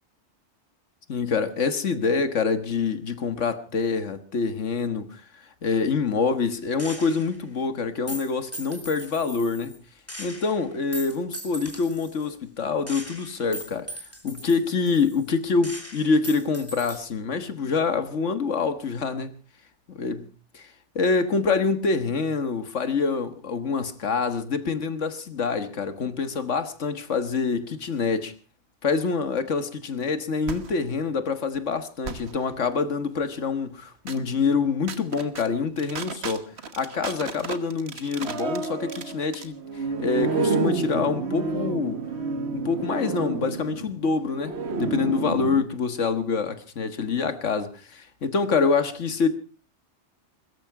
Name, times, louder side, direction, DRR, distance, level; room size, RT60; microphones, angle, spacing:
voice 1, 1.1-5.2 5.6-9.8 10.2-13.9 14.2-19.4 19.9-20.3 20.5-20.7 21.0-28.3 28.8-42.0 42.5-49.3, left 4 dB, 85° left, 1.8 m, -26 dB
Gunshot gunfire, 6.8-7.4 8.1-9.8 10.1-12.3 12.9-15.3 15.6-17.0, equal, 10° left, 2.9 m, -39 dB
sound 1, 30.5-30.8 32.0-32.4 34.1-34.2 34.9-35.5 35.8-45.6, right 4 dB, 65° right, 1.5 m, -30 dB
22.0 x 13.5 x 4.7 m
omnidirectional pair, 1.2 m